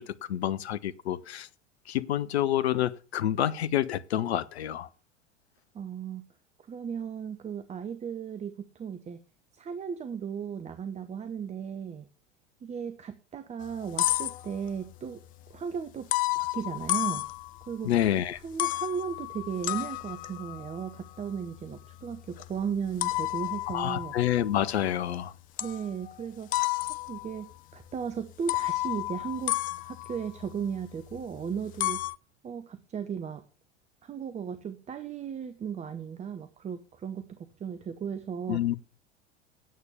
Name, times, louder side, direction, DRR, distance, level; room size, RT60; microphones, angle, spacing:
voice 1, 0.0-1.5 1.9-4.9 17.8-18.4 23.7-25.3 38.5-38.7, left 11 dB, 65° left, 0.8 m, -28 dB
voice 2, 5.7-6.3 6.7-9.2 9.5-12.1 12.6-15.2 15.5-16.1 16.4-17.3 17.7-17.9 18.4-24.1 25.6-26.5 27.1-29.6 29.8-32.0 32.4-33.4 34.0-38.6, right 7 dB, 20° right, 1.0 m, -36 dB
sound 1, 13.6-14.9 16.1-17.9 18.4-25.1 25.6-26.1 26.5-27.5 27.9-28.0 28.5-31.2 31.5-32.1, left 18 dB, 25° left, 0.4 m, -32 dB
9.4 x 8.1 x 7.0 m
figure-of-eight pair, 85°, 34 cm